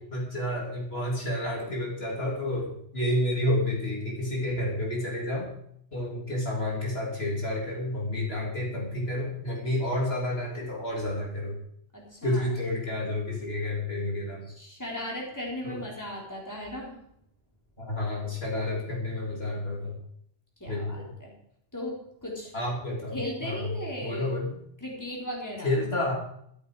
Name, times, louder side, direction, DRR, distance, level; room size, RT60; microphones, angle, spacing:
voice 1, 0.0-5.5 5.9-11.6 12.2-14.4 15.6-15.9 17.8-20.0 20.7-21.1 22.5-23.7 24.0-24.6 25.6-26.1, left 1 dB, 55° left, -3 dB, 3.6 m, -30 dB
voice 2, 11.9-12.5 14.6-17.0 20.6-21.3 21.7-22.5 23.1-24.3 24.8-25.8, left 1 dB, 15° left, -2 dB, 4.1 m, -37 dB
13.0 x 13.0 x 4.9 m, 0.70 s
omnidirectional pair, 1.2 m